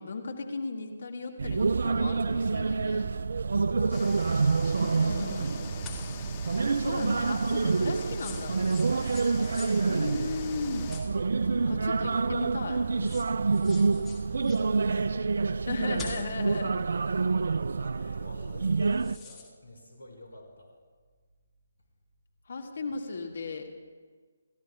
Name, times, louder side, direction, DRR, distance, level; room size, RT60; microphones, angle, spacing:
voice 1, 0.0-3.0 4.8-5.7 6.7-8.6 9.9-10.9 11.7-13.2 15.7-16.7 22.5-23.7, left 4 dB, 55° left, 2 dB, 2.0 m, -36 dB
sound 1, 1.4-19.2, right 4 dB, 60° right, 0.3 m, -27 dB
voice 2, 3.5-4.3 4.6-6.4 11.5-11.8 13.4-15.2 17.8-20.7, left 1 dB, 80° left, 1 dB, 5.0 m, -48 dB
sound 2, 3.9-11.0, left 8 dB, 30° left, 1.2 m, -44 dB
Bag of Gold, 5.8-6.2 8.0-9.8 10.9-11.6 12.6-12.7 13.0-14.7 15.9-16.4 18.8-19.5, left 4 dB, 10° left, 1.7 m, -46 dB
28.5 x 13.5 x 2.4 m, 1.5 s
figure-of-eight pair, 145°, 0 cm